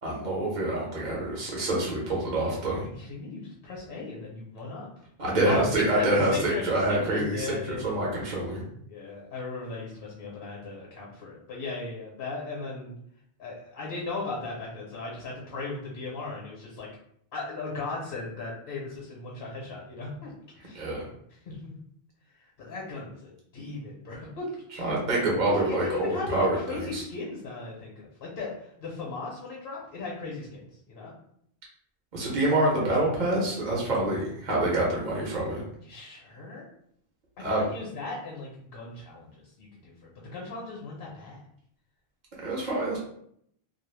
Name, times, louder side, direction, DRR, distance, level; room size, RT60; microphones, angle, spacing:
voice 1, 0.0-2.8 5.2-8.6 20.7-21.0 24.8-27.0 32.1-35.6 37.4-37.6 42.4-43.0, right 1 dB, 50° right, -3 dB, 0.8 m, -26 dB
voice 2, 2.7-4.9 5.4-8.3 8.9-13.0 13.4-16.9 17.3-20.3 20.6-20.9 21.4-21.7 22.4-24.9 25.5-30.6 30.9-31.1 35.8-36.7 37.4-41.4, left 3 dB, 65° left, -3 dB, 1.0 m, -37 dB
2.3 x 2.1 x 3.2 m, 0.69 s
omnidirectional pair, 1.1 m